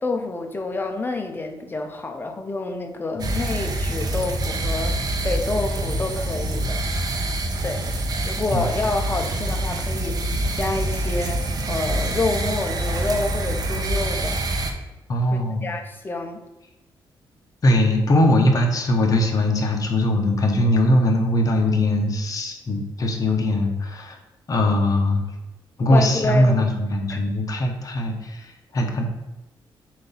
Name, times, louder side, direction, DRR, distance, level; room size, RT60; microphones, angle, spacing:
voice 1, 0.0-7.1 7.6-7.9 8.2-10.3 10.5-11.4 11.7-14.4 15.3-16.4 25.9-26.6 27.1-27.2, left 2 dB, 25° left, 4 dB, 0.8 m, -28 dB
sound 1, 3.2-14.7, right 1 dB, 50° right, 0.9 m, -26 dB
voice 2, 15.1-15.7 17.6-24.2 24.5-25.3 25.8-29.1, left 1 dB, 40° left, 2 dB, 1.1 m, -21 dB
7.5 x 2.8 x 5.6 m, 1.0 s
wide cardioid pair, 145°, 9 cm